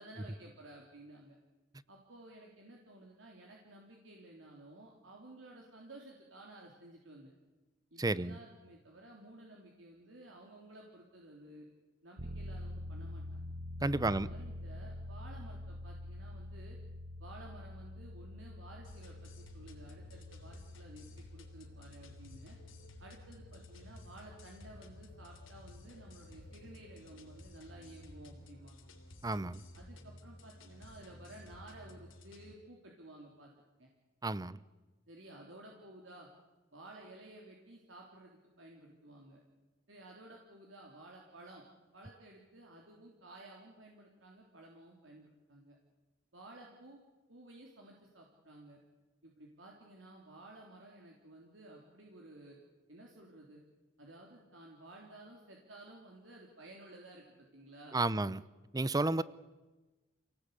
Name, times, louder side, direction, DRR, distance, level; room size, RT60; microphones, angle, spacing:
voice 1, 0.0-1.4 1.9-7.3 7.9-11.7 12.0-13.4 14.1-16.8 17.2-21.1 21.3-22.6 23.0-28.8 29.7-33.5 33.8-33.9 35.1-36.3 36.7-39.4 39.9-41.6 41.9-45.8 46.3-47.0 47.3-48.8 49.2-52.6 52.9-53.6 54.0-58.2, right 1 dB, 75° right, -1 dB, 3.5 m, -54 dB
voice 2, 8.0-8.4 13.8-14.3 29.2-29.6 34.2-34.6 57.9-58.4 58.7-59.2, right 2 dB, 20° right, 18 dB, 0.7 m, -32 dB
sound 1, 12.2-28.5, left 1 dB, 45° right, 1.2 m, -48 dB
sound 2, 18.8-32.5, left 1 dB, 85° left, 3.4 m, -55 dB
27.5 x 19.0 x 8.4 m, 1.2 s
head